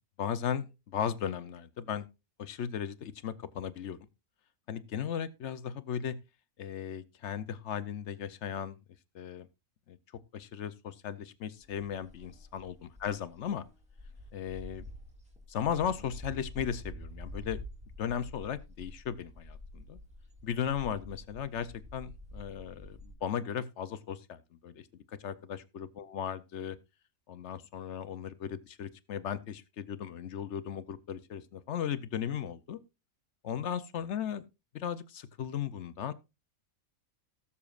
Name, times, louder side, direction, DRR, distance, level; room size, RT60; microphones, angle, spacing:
voice 1, 0.2-2.0 2.4-4.0 4.7-6.2 6.6-8.8 9.1-9.5 9.9-10.0 10.3-12.7 13.0-13.6 14.3-14.8 15.5-17.6 18.0-20.0 20.4-24.9 25.2-26.8 27.3-32.8 33.4-34.4 34.7-36.1, left 8 dB, 60° left, 14 dB, 0.9 m, -36 dB
sound 1, 11.6-23.1, left 1 dB, 5° right, 2.0 m, -48 dB
18.5 x 7.1 x 2.4 m, 0.26 s
omnidirectional pair, 1.5 m